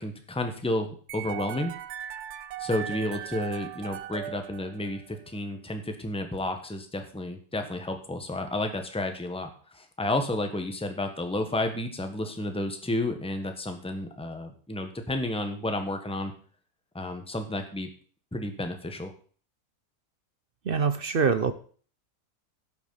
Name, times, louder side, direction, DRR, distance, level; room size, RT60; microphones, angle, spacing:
voice 1, 0.0-1.7 2.6-16.3 16.9-17.9 18.3-19.1, left 1 dB, 5° left, 6 dB, 1.2 m, -31 dB
sound 1, 1.1-5.2, right 11 dB, 90° right, 1.2 m, -38 dB
voice 2, 20.6-21.5, right 5 dB, 50° right, 12 dB, 0.7 m, -24 dB
11.5 x 7.2 x 5.7 m, 0.43 s
omnidirectional pair, 1.6 m